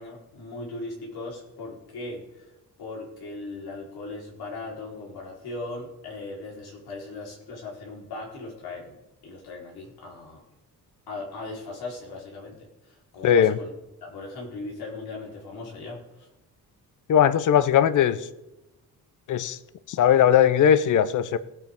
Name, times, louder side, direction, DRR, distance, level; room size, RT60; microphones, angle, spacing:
voice 1, 0.0-2.5 2.8-9.0 9.2-10.4 11.1-12.6 12.8-13.7 14.0-16.3, left 2 dB, 75° left, -3 dB, 4.1 m, -38 dB
voice 2, 13.2-13.6 17.1-18.3 19.3-19.6 19.9-21.4, left 9 dB, 50° left, 14 dB, 0.6 m, -19 dB
19.0 x 9.0 x 3.6 m, 0.95 s
wide cardioid pair, 170°, 38 cm